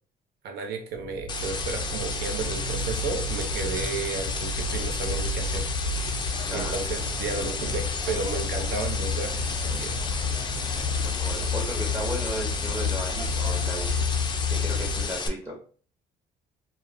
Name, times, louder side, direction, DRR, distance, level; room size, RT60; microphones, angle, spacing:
voice 1, 0.4-5.7 6.5-10.0, right 5 dB, 70° right, 4 dB, 0.7 m, -33 dB
sound 1, 0.9-15.1, left 4 dB, 85° left, 0.5 m, -31 dB
sound 2, 1.3-15.3, left 4 dB, 25° left, 0.4 m, -33 dB
sound 3, 6.3-13.7, right 2 dB, 30° right, 1.2 m, -44 dB
voice 2, 11.0-13.9 14.5-15.5, equal, 15° right, -2 dB, 0.8 m, -35 dB
2.4 x 2.3 x 3.3 m, 0.43 s
cardioid pair, 110°, 17 cm